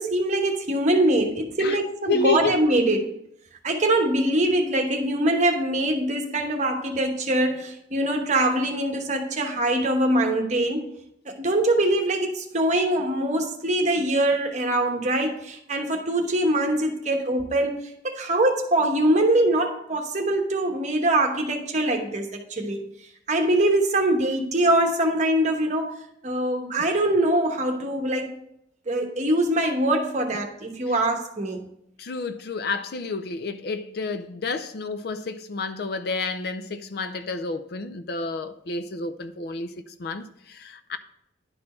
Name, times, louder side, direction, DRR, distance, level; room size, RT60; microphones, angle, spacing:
voice 1, 0.0-3.1 3.6-10.9 11.2-22.8 23.3-28.3 28.9-31.6, right 1 dB, 40° right, 1.1 m, -23 dB
voice 2, 2.1-2.5 32.0-41.0, left 4 dB, 55° left, 0.5 m, -30 dB
10.5 x 4.3 x 4.3 m
head